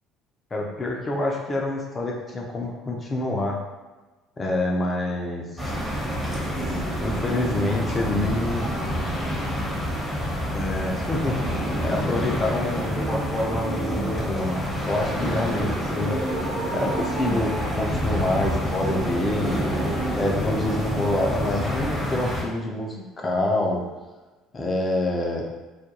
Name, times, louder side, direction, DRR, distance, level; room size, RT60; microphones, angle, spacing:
voice 1, 0.5-3.6 4.4-5.8 7.0-8.7 10.5-16.1 16.7-19.6 20.1-23.8 24.5-25.6, left 2 dB, 30° left, -1 dB, 0.5 m, -27 dB
sound 1, 5.6-22.4, equal, 10° right, 1.0 m, -27 dB
2.4 x 2.1 x 2.9 m, 1.2 s
hypercardioid pair, 70°, 0 cm